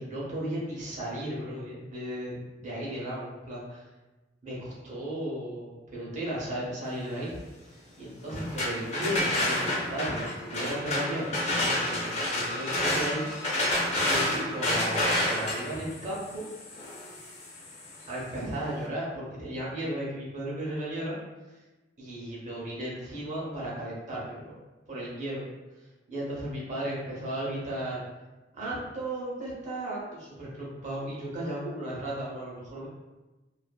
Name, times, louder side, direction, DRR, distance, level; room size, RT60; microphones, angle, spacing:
voice 1, 0.0-3.8 4.4-7.4 7.7-13.3 13.6-16.4 18.1-21.2 21.5-21.6 22.0-24.6 24.9-25.4 26.1-28.0 28.5-32.9, right 1 dB, 40° right, -5 dB, 0.7 m, -35 dB
sound 1, 8.3-18.1, left 1 dB, 35° left, 0.5 m, -29 dB
2.5 x 2.5 x 2.2 m, 1.2 s
head